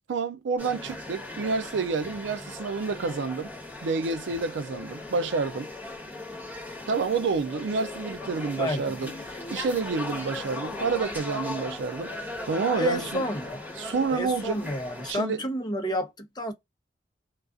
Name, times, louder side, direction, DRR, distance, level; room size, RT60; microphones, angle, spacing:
voice 1, 0.1-3.5 3.8-5.7 6.9-9.1 9.5-13.2 13.8-14.6 15.0-15.4, right 4 dB, 80° right, 0.4 m, -29 dB
sound 1, 0.6-15.1, left 2 dB, 10° right, 1.2 m, -38 dB
voice 2, 8.6-8.9 12.7-13.6 14.1-16.5, equal, 25° left, 0.7 m, -30 dB
2.3 x 2.3 x 2.4 m
head